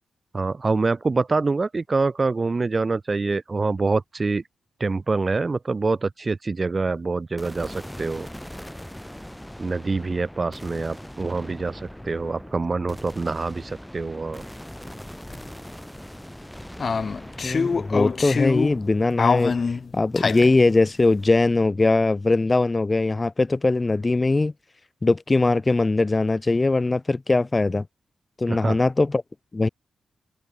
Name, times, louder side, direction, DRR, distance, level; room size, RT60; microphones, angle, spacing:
voice 1, 0.3-4.4 4.8-8.3 9.6-14.4 28.5-28.8, right 3 dB, 25° right, 1.1 m, -25 dB
sound 1, 7.4-21.7, equal, 5° left, 2.8 m, -41 dB
sound 2, 14.9-15.0 15.3-15.4 16.8-18.8 19.2-20.5, left 5 dB, 40° left, 0.4 m, -24 dB
voice 2, 17.4-19.5 19.9-24.5 25.0-27.9 28.4-29.2 29.5-29.7, left 3 dB, 20° left, 1.3 m, -21 dB
open air
wide cardioid pair, 130°, 0 cm